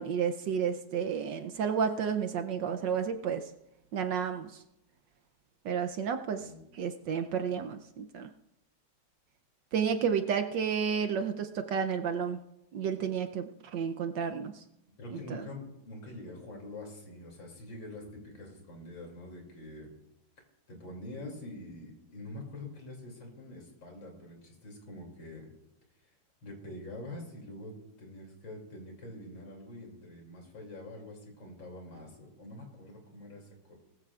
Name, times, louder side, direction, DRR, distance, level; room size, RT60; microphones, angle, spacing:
voice 1, 0.0-3.4 3.9-4.5 5.6-6.4 6.8-8.3 9.7-12.4 12.7-14.5 15.3-15.4, right 7 dB, 70° right, 7 dB, 1.3 m, -31 dB
voice 2, 15.0-19.9 20.7-25.5 26.4-33.8, left 1 dB, 65° left, 1 dB, 3.5 m, -45 dB
20.0 x 14.5 x 2.4 m, 0.88 s
omnidirectional pair, 2.2 m